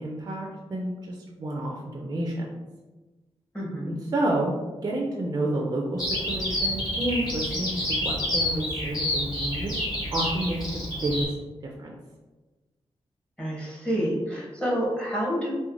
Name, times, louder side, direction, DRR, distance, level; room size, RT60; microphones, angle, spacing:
voice 1, 0.0-2.4 3.9-9.7 10.1-11.3 11.8-11.9, right 1 dB, 35° right, -1 dB, 0.4 m, -30 dB
voice 2, 3.5-4.0 13.4-15.5, equal, 10° left, -4 dB, 0.8 m, -28 dB
Bird vocalization bird call bird song, 6.0-11.3, left 1 dB, 35° left, 1.2 m, -29 dB
3.0 x 2.1 x 2.4 m, 1.2 s
wide cardioid pair, 95°, 11 cm